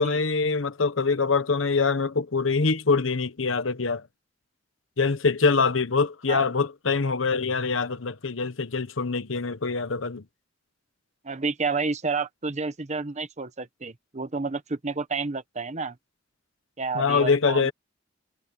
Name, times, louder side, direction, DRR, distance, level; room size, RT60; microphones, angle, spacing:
voice 1, 0.0-4.0 5.0-10.2 16.9-17.7, left 4 dB, 80° left, 1.0 m, -24 dB
voice 2, 11.2-16.0 16.8-17.7, right 4 dB, 35° right, 1.1 m, -30 dB
head